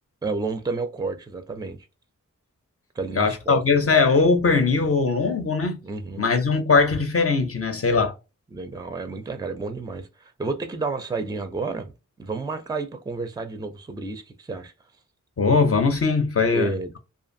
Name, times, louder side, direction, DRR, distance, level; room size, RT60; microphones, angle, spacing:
voice 1, 0.2-1.8 2.9-3.9 5.8-6.2 8.5-11.9 12.2-14.7 16.5-17.0, right 3 dB, 15° right, 0.4 m, -31 dB
voice 2, 3.2-5.8 6.2-8.1 15.4-16.7, left 4 dB, 45° left, 0.6 m, -20 dB
2.5 x 2.4 x 2.6 m
wide cardioid pair, 70°, 31 cm